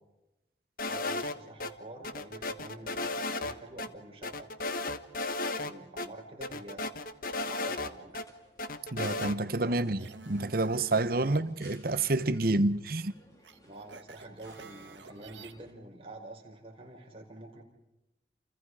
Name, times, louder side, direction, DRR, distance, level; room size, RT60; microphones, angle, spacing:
sound 1, 0.8-1.7 2.0-3.5 3.8-3.9 4.2-5.7 6.0-6.1 6.4-8.2 8.6-9.4, left 2 dB, 50° left, 1.4 m, -34 dB
voice 1, 0.8-4.9 5.6-6.8 7.5-8.3 9.7-9.9 11.2-11.4 13.6-17.6, right 2 dB, 30° right, 5.4 m, -47 dB
sound 2, 6.8-15.7, equal, 20° left, 4.7 m, -60 dB
voice 2, 8.9-13.1, right 2 dB, 55° right, 1.1 m, -28 dB
sound 3, 10.0-11.4 11.8-11.9 13.4-15.5, right 3 dB, 80° right, 2.0 m, -51 dB
29.5 x 29.5 x 5.0 m
head